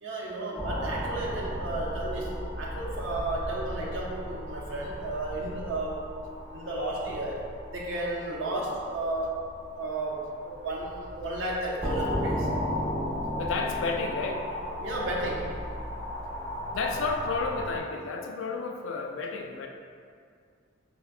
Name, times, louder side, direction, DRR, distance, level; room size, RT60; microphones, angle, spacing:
voice 1, 0.0-6.1 6.5-7.4 7.7-9.4 9.8-12.5 14.8-15.5, right 2 dB, 80° right, -3 dB, 0.6 m, -33 dB
sound 1, 0.6-17.8, left 1 dB, 5° left, 0.6 m, -35 dB
voice 2, 13.4-14.5 16.7-19.7, left 4 dB, 75° left, 3 dB, 0.3 m, -32 dB
4.5 x 2.2 x 2.4 m, 2.1 s
head